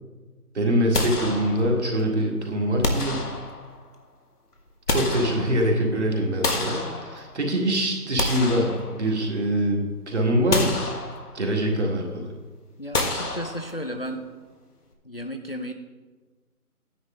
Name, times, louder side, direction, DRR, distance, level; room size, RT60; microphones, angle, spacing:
voice 1, 0.5-3.3 4.9-10.8 11.3-12.3, equal, 50° right, 0 dB, 1.9 m, -24 dB
sound 1, 0.9-2.0 2.8-3.9 4.5-5.9 6.4-7.5 8.0-9.4 9.8-10.0 10.5-11.6 12.9-14.1, left 2 dB, 90° left, 1.5 m, -29 dB
voice 2, 12.8-14.3 15.0-15.7, equal, 40° left, 5 dB, 0.5 m, -33 dB
9.9 x 9.6 x 3.7 m, 1.3 s
figure-of-eight pair, 170°, 45 cm